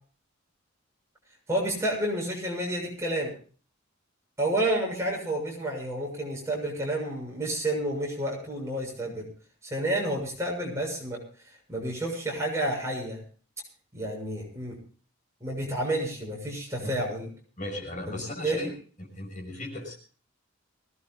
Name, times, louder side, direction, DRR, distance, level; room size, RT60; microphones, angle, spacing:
voice 1, 1.5-3.3 4.4-9.3 9.6-11.2 11.7-13.2 13.9-14.8 15.4-17.3 18.1-18.2 18.4-18.7, right 1 dB, 15° right, -2 dB, 7.0 m, -30 dB
voice 2, 17.6-18.7 19.0-20.0, left 1 dB, 35° left, 0 dB, 6.4 m, -36 dB
23.5 x 18.5 x 2.4 m, 0.41 s
head